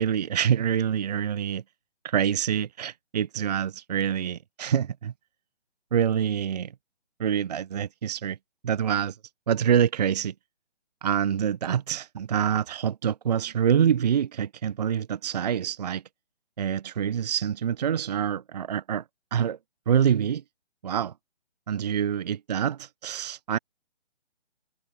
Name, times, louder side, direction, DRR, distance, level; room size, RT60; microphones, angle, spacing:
voice 1, 0.0-1.6 2.0-5.1 5.9-6.7 7.2-8.4 8.6-9.2 9.5-10.3 11.0-16.0 16.6-19.0 19.3-19.6 19.9-20.4 20.8-21.1 21.7-23.6, right 8 dB, 35° right, 0.9 m, -26 dB
figure-of-eight pair, 145°, 35 cm